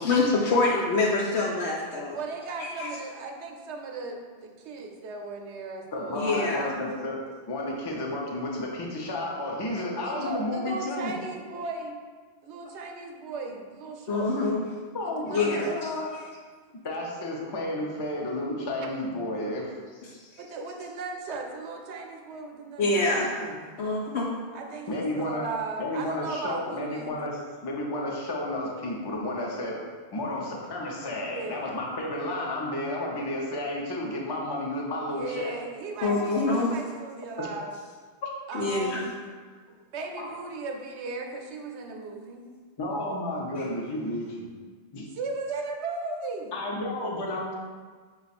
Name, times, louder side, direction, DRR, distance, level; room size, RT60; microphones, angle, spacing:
voice 1, 0.0-2.2 2.6-2.9 6.1-6.7 14.1-14.6 15.3-15.7 22.8-23.3 23.8-24.4 36.0-36.7 38.5-39.1 43.6-43.7, left 3 dB, 80° left, -2 dB, 0.9 m, -25 dB
voice 2, 2.1-6.7 9.7-12.0 12.4-14.6 15.0-15.8 20.4-23.2 24.5-27.2 31.2-31.7 35.1-37.7 38.5-39.0 39.9-42.5 45.1-46.5, right 3 dB, 90° right, 3 dB, 0.9 m, -37 dB
voice 3, 5.9-7.2 7.5-11.1 14.9-16.1 16.8-20.2 23.2-23.5 24.9-25.5 25.8-29.8 30.1-35.6 37.4-37.5 40.2-40.3 42.8-44.5 44.9-45.1 46.5-47.5, left 1 dB, 30° left, -2 dB, 0.5 m, -32 dB
5.5 x 2.4 x 4.1 m, 1.6 s
omnidirectional pair, 1.1 m